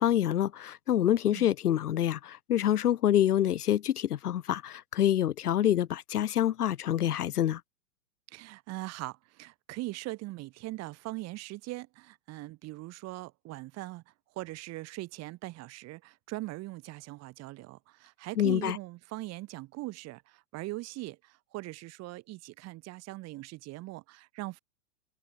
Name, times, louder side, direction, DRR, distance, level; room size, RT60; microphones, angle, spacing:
voice 1, 0.0-7.6 18.4-18.8, left 11 dB, 75° left, 1.3 m, -26 dB
voice 2, 8.3-14.0 14.4-24.6, right 19 dB, 35° right, 5.4 m, -41 dB
hypercardioid pair, 125°, 46 cm